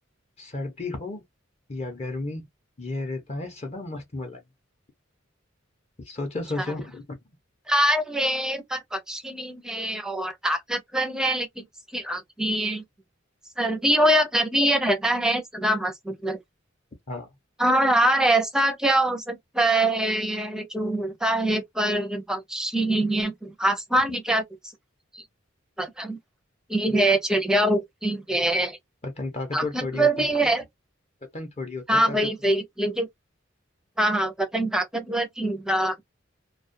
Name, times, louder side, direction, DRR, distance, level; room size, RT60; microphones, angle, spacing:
voice 1, 0.4-1.2 1.7-2.5 2.8-4.4 6.1-7.2 17.1-17.3 26.9-27.0 29.0-30.3 31.3-32.2, left 2 dB, 35° left, 0.7 m, -33 dB
voice 2, 7.7-11.6 11.9-12.8 13.6-16.4 17.6-24.4 25.1-25.2 25.8-26.2 26.7-28.8 29.5-30.6 31.9-33.1 34.0-35.9, right 1 dB, 5° right, 0.5 m, -24 dB
2.3 x 2.2 x 2.5 m
head